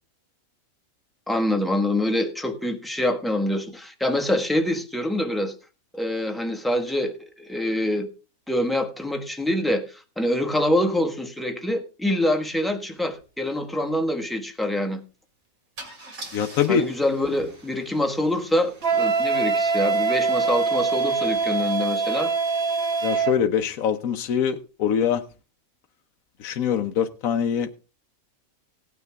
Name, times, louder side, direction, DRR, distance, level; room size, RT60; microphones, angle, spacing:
voice 1, 1.3-5.5 5.9-8.1 8.5-15.0 16.7-22.3, left 1 dB, ahead, 5 dB, 1.2 m, -25 dB
Car / Engine starting / Idling, 13.1-13.2 13.5-13.8 15.8-21.5, right 2 dB, 65° right, 3.0 m, -46 dB
voice 2, 16.3-16.8 23.0-25.2 26.4-27.7, left 8 dB, 70° left, 5 dB, 1.2 m, -23 dB
Wind instrument woodwind instrument, 18.8-23.4, right 4 dB, 45° right, 1.2 m, -23 dB
17.0 x 9.4 x 3.5 m, 0.34 s
omnidirectional pair, 1.6 m